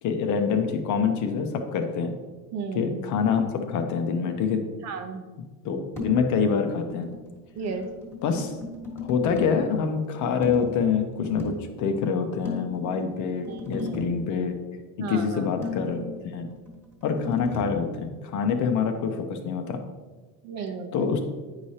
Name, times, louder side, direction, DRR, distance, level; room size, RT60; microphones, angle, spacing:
voice 1, 0.0-2.1 2.7-4.6 5.6-7.1 8.2-8.5 9.0-14.6 15.1-16.5 17.0-19.8 20.9-21.2, left 6 dB, 55° left, 6 dB, 0.8 m, -26 dB
voice 2, 2.5-3.0 4.8-5.2 7.6-7.9 13.5-14.0 15.0-15.4 20.4-21.1, right 5 dB, 45° right, 7 dB, 0.7 m, -34 dB
sound 1, 6.0-6.4 6.7-9.6 10.4-11.7 12.4-14.2 15.6-17.8, left 3 dB, 5° left, 1.6 m, -37 dB
9.3 x 4.9 x 2.8 m, 1.3 s
cardioid pair, 140°, 37 cm